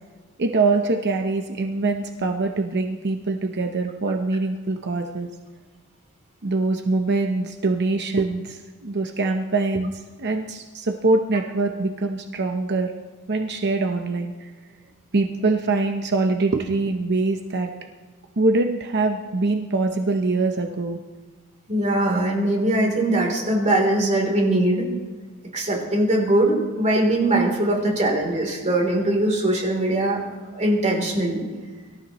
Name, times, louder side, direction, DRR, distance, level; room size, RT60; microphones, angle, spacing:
voice 1, 0.4-5.3 6.4-12.9 13.3-14.5 15.1-17.7 18.4-21.0, right 3 dB, 50° right, 4 dB, 0.9 m, -23 dB
voice 2, 21.7-24.8 25.5-30.2 30.5-31.4, right 1 dB, 35° right, 0 dB, 3.4 m, -21 dB
24.5 x 13.0 x 3.1 m, 1.4 s
head